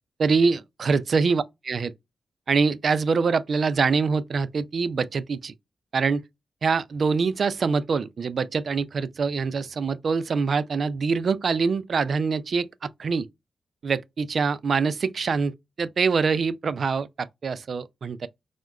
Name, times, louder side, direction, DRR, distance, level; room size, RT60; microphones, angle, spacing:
voice 1, 0.2-1.9 2.5-5.5 5.9-6.2 6.6-13.3 13.8-18.3, right 5 dB, 60° right, 0.3 m, -24 dB
4.6 x 2.1 x 2.3 m
cardioid pair, 95°, 0 cm